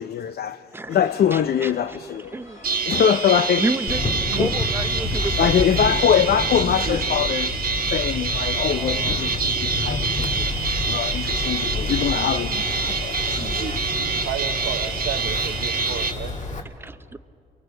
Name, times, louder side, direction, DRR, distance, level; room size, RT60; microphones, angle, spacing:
voice 1, 0.0-0.6 0.9-2.4 2.9-3.7 4.4-4.5 5.4-7.5 7.9-10.5 10.9-13.7, left 9 dB, 50° left, 0.5 m, -23 dB
sound 1, 0.9-14.2, left 1 dB, 80° left, 7.4 m, -48 dB
voice 2, 1.3-1.7 2.3-2.6 3.6-4.0 4.3-5.5 8.7-9.2 16.8-17.2, right 2 dB, 10° right, 0.6 m, -30 dB
sound 2, 2.6-16.1, right 4 dB, 45° right, 1.4 m, -26 dB
Wind, 3.9-16.6, left 3 dB, 35° left, 1.8 m, -30 dB
voice 3, 14.0-16.7, right 10 dB, 85° right, 0.8 m, -33 dB
29.0 x 23.0 x 4.4 m
cardioid pair, 90°, 20 cm